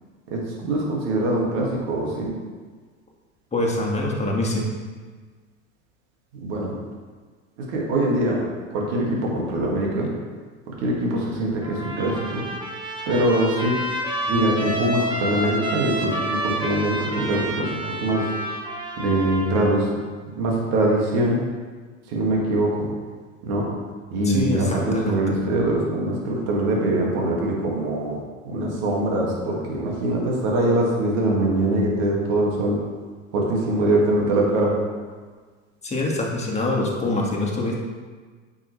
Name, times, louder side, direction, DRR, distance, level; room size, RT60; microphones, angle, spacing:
voice 1, 0.3-2.3 6.3-6.7 7.7-8.4 8.7-10.1 10.7-12.4 13.1-13.7 14.3-18.2 19.0-19.9 20.3-21.4 22.1-22.9 23.4-23.7 24.1-28.2 28.4-32.8 33.3-34.7, right 1 dB, 65° right, -2 dB, 2.2 m, -23 dB
voice 2, 3.5-4.7 24.3-25.2 35.8-37.8, left 2 dB, 15° left, -2 dB, 2.0 m, -25 dB
Trumpet, 11.6-19.8, right 1 dB, 10° right, 1.5 m, -29 dB
8.8 x 6.1 x 3.3 m, 1.5 s
hypercardioid pair, 80°, 38 cm